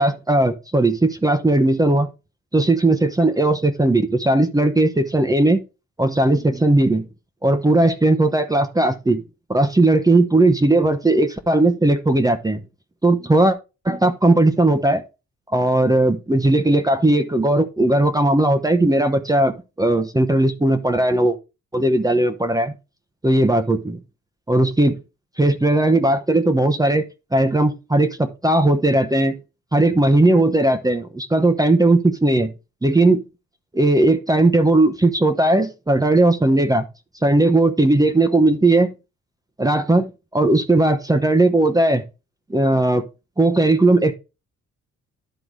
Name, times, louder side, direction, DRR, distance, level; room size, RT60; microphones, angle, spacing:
voice 1, 0.0-2.1 2.5-5.6 6.0-7.1 7.4-9.2 9.5-12.6 13.0-13.6 13.8-15.0 15.5-21.4 21.7-22.7 23.2-24.0 24.5-25.0 25.4-27.1 27.3-29.4 29.7-32.5 32.8-33.2 33.7-36.8 37.2-38.9 39.6-42.0 42.5-43.0 43.4-44.1, right 2 dB, 10° right, 0.9 m, -17 dB
11.0 x 3.8 x 4.7 m
cardioid pair, 90°, 30 cm